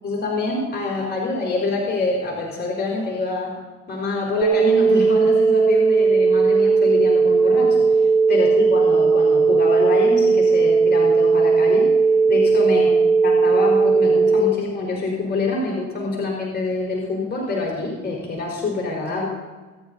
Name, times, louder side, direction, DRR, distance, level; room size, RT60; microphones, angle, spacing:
voice 1, 0.0-3.5 3.9-8.0 8.3-11.9 12.3-12.9 13.2-19.3, left 3 dB, 35° left, -3 dB, 4.8 m, -26 dB
sound 1, 4.4-14.4, right 4 dB, 50° right, 1.9 m, -17 dB
26.5 x 9.8 x 4.2 m, 1.3 s
cardioid pair, 90°, 30 cm